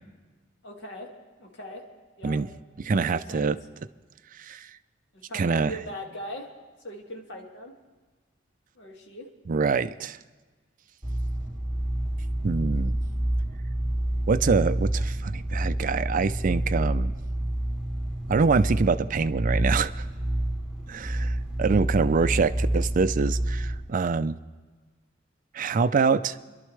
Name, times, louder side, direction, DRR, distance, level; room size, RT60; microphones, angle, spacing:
voice 1, 0.6-1.1 1.4-1.8 2.2-2.4 2.9-3.5 5.1-6.5 6.8-7.8 8.8-9.3, equal, 65° left, 1 dB, 2.0 m, -40 dB
voice 2, 2.9-3.6 4.4-4.7 5.3-5.7 9.5-10.2 12.4-13.0 14.3-17.1 18.3-20.0 20.9-24.4 25.5-26.4, right 4 dB, 45° right, 13 dB, 0.4 m, -25 dB
sound 1, 11.0-23.8, right 1 dB, 5° right, 3.4 m, -28 dB
27.0 x 12.0 x 3.2 m, 1.4 s
head